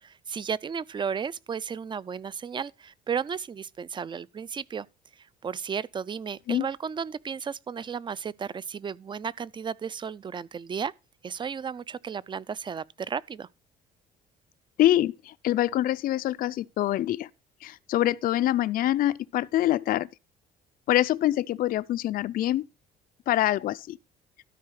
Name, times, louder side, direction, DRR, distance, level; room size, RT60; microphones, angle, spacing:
voice 1, 0.0-4.9 5.2-10.9 11.2-13.5, right 6 dB, 30° right, 0.5 m, -34 dB
voice 2, 14.8-17.3 17.6-20.1 20.9-22.7 23.3-24.0, left 13 dB, 55° left, 0.5 m, -25 dB
13.0 x 4.7 x 6.4 m
cardioid pair, 110°, 17 cm